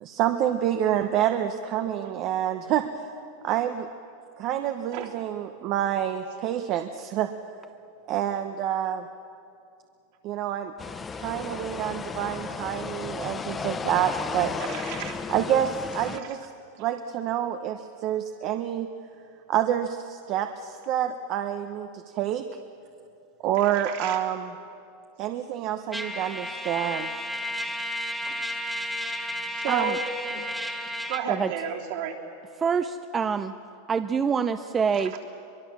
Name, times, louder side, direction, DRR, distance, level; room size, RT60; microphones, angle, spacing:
voice 1, 0.0-2.9 3.4-3.9 4.4-7.3 8.1-9.0 10.2-10.7 11.1-14.5 15.3-16.4 16.8-18.9 19.5-21.9 22.1-22.4 23.4-24.5 25.2-27.1, right 11 dB, 40° right, 7 dB, 0.9 m, -27 dB
sound 1, 10.8-16.2, left 5 dB, 15° left, 0.8 m, -34 dB
voice 2, 14.6-15.2 16.1-16.3 16.8-16.9 23.6-24.2 28.3-28.4 29.6-30.4 31.1-32.2 34.9-35.2, right 8 dB, 60° right, -1 dB, 3.5 m, -32 dB
Trumpet, 25.9-31.3, left 1 dB, ahead, 1.3 m, -32 dB
voice 3, 32.6-33.5 33.9-35.2, right 6 dB, 15° right, 10 dB, 0.5 m, -26 dB
23.5 x 22.0 x 7.4 m, 2.6 s
supercardioid pair, 160°, 0 cm